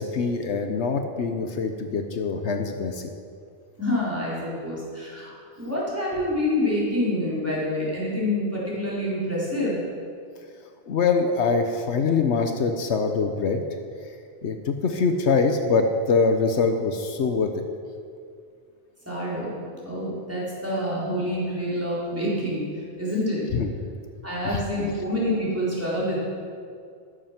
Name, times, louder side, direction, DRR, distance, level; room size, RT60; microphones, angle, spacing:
voice 1, 0.0-3.1 10.9-13.6 14.4-17.5 23.5-23.7, left 4 dB, 75° left, 6 dB, 1.1 m, -24 dB
voice 2, 3.8-9.8 19.1-23.4 24.2-26.2, left 1 dB, 10° right, -8 dB, 4.2 m, -27 dB
13.5 x 10.0 x 5.9 m, 2.3 s
omnidirectional pair, 1.2 m